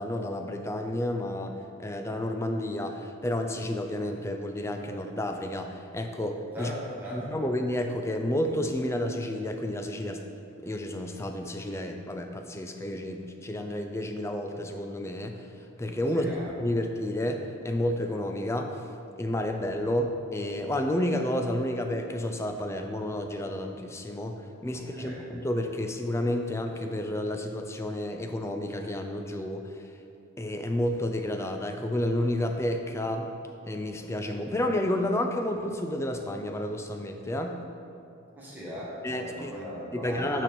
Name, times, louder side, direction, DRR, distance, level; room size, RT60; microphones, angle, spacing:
voice 1, 0.0-6.7 7.1-10.2 10.6-15.4 15.8-16.3 16.6-18.8 19.2-29.7 30.4-33.3 33.6-37.6 39.0-39.5 39.9-40.4, left 1 dB, 10° left, 4 dB, 0.3 m, -30 dB
voice 2, 6.5-7.3 16.1-16.5 24.7-25.2 38.3-40.4, equal, 10° right, -8 dB, 1.4 m, -39 dB
6.5 x 4.2 x 6.1 m, 2.6 s
head